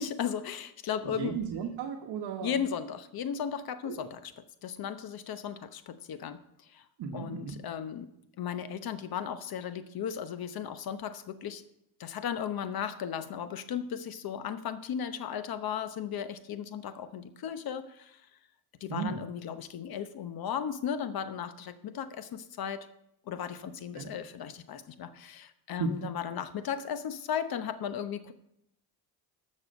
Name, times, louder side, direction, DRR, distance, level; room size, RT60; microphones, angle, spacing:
voice 1, 0.0-1.4 2.4-4.3 4.6-6.8 7.1-11.6 12.0-18.2 18.8-22.9 23.3-28.3, left 8 dB, 55° left, 11 dB, 0.9 m, -36 dB
voice 2, 1.0-2.6 3.8-4.1 7.0-7.6 18.9-19.2 23.9-24.1 25.8-25.9, right 6 dB, 60° right, 2 dB, 1.2 m, -35 dB
13.0 x 6.5 x 5.2 m, 0.78 s
cardioid pair, 105°, 45 cm